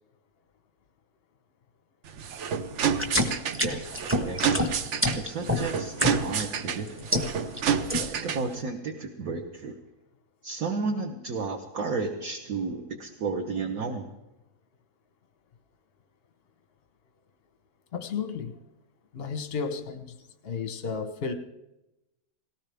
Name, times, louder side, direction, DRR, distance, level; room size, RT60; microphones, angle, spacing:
sound 1, 2.0-8.6, right 7 dB, 80° right, 0.6 m, -29 dB
sound 2, 2.9-6.5 6.9-7.6 7.9-8.3, left 1 dB, 10° right, 0.8 m, -27 dB
voice 1, 3.6-4.4 5.2-6.9 8.0-9.8 10.4-14.1, right 4 dB, 50° right, 1.3 m, -32 dB
voice 2, 17.9-18.5 19.1-20.2 20.4-21.3, left 5 dB, 40° left, 0.9 m, -33 dB
18.5 x 17.5 x 3.5 m
omnidirectional pair, 2.2 m